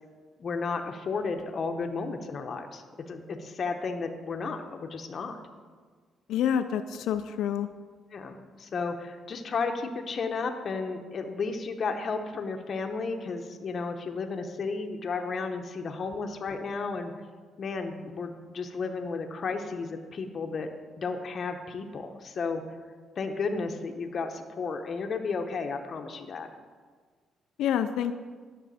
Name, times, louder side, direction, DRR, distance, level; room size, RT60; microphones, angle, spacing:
voice 1, 0.4-5.3 8.1-17.1 17.6-20.7 21.0-22.6 23.2-26.5, left 4 dB, 50° left, 5 dB, 0.8 m, -33 dB
voice 2, 6.3-7.7 27.6-28.1, left 9 dB, 85° left, 9 dB, 0.3 m, -27 dB
10.0 x 6.2 x 4.1 m, 1.5 s
cardioid pair, 90°, 0 cm